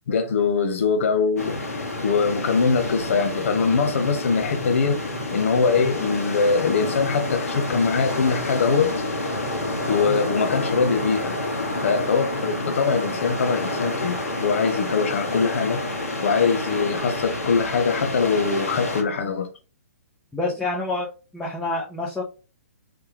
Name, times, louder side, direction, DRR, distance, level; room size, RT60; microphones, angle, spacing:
voice 1, 0.1-1.6 2.0-5.0 5.3-8.9 9.9-11.4 11.8-15.8 16.2-19.5, left 5 dB, 60° left, 0.7 m, -22 dB
sound 1, 1.4-19.0, left 2 dB, 80° left, 1.7 m, -29 dB
voice 2, 20.3-21.1 21.3-22.2, left 2 dB, 5° left, 0.8 m, -27 dB
3.4 x 3.3 x 3.0 m
figure-of-eight pair, 130°, 8 cm